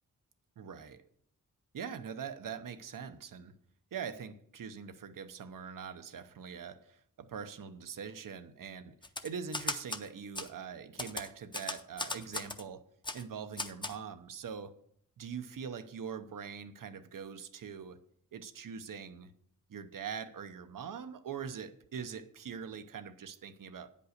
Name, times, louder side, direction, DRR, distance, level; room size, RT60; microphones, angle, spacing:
voice 1, 0.6-1.0 1.7-3.5 3.9-8.9 9.2-12.8 13.1-14.7 15.2-18.0 18.3-19.3 19.7-23.9, right 7 dB, 90° right, 0.8 m, -43 dB
Typewriter, 9.0-10.0 10.4-10.5 11.0-12.6 13.0-13.2 13.6-14.0, left 2 dB, 15° left, 0.5 m, -37 dB
9.4 x 5.4 x 6.5 m
wide cardioid pair, 155°, 32 cm